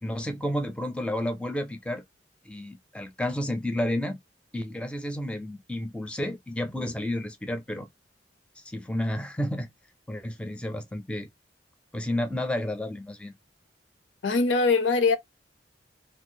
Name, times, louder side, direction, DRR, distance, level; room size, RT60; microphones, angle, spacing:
voice 1, 0.0-2.0 2.5-4.2 4.5-7.9 8.6-9.7 10.1-11.3 11.9-13.3, left 1 dB, 5° left, 0.4 m, -31 dB
voice 2, 14.2-15.2, left 4 dB, 85° left, 0.6 m, -22 dB
2.5 x 2.3 x 3.8 m
head